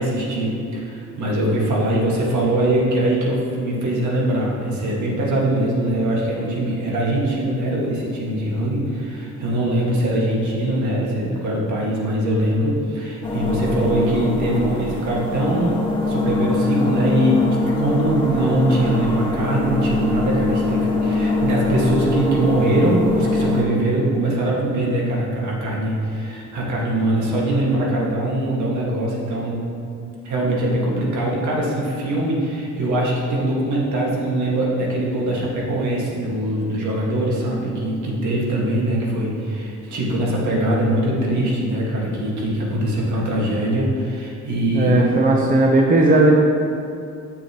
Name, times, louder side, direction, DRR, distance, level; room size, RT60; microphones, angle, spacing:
voice 1, 0.0-15.8 16.1-17.4 17.8-29.6 30.2-45.1, right 1 dB, 75° right, -4 dB, 2.0 m, -22 dB
sound 1, 13.2-23.6, left 2 dB, 15° left, 1.8 m, -23 dB
voice 2, 44.7-46.4, right 2 dB, 30° right, -1 dB, 0.9 m, -16 dB
9.7 x 7.0 x 3.1 m, 2.4 s
cardioid pair, 90°, 30 cm